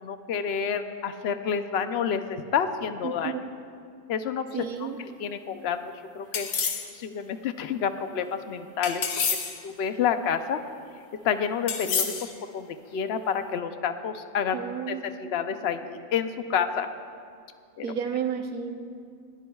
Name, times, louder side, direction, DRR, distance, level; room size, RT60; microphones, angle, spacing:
voice 1, 0.0-3.3 4.1-4.7 5.2-5.8 6.1-6.5 6.9-9.0 9.6-10.6 11.2-14.6 14.9-16.9 17.8-17.9, left 7 dB, 55° left, 8 dB, 0.8 m, -29 dB
voice 2, 3.0-3.5 4.5-5.0 14.5-15.0 17.8-18.8, right 8 dB, 75° right, 4 dB, 1.5 m, -32 dB
sound 1, 6.3-6.9 8.8-9.6 11.7-12.3, left 6 dB, 85° left, 1.6 m, -28 dB
20.0 x 17.0 x 2.4 m, 2.4 s
omnidirectional pair, 1.6 m